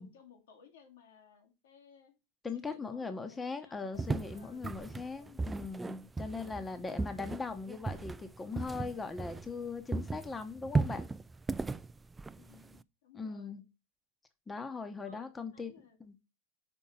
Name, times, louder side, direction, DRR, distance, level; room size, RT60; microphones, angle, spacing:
voice 1, 0.0-2.2 2.5-5.4 6.5-7.1 7.4-7.7 12.3-13.6 15.0-16.0, left 7 dB, 75° left, 5 dB, 2.0 m, -60 dB
voice 2, 2.4-11.0 13.1-13.6 14.5-15.7 16.0-16.2, left 4 dB, 15° left, 9 dB, 1.0 m, -40 dB
sound 1, 4.0-9.7 9.9-12.8, right 3 dB, 15° right, 0.3 m, -36 dB
5.4 x 4.4 x 5.6 m, 0.26 s
hypercardioid pair, 100°, 0 cm